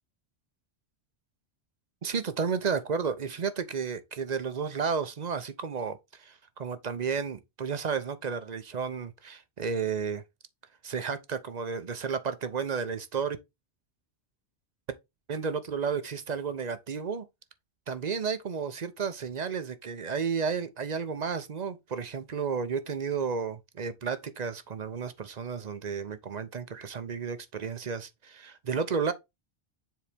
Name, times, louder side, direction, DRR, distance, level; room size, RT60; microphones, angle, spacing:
voice 1, 2.0-10.2 10.8-13.4 15.3-17.3 17.9-29.1, right 6 dB, 45° right, 0.7 m, -32 dB
7.4 x 4.0 x 3.4 m
omnidirectional pair, 1.1 m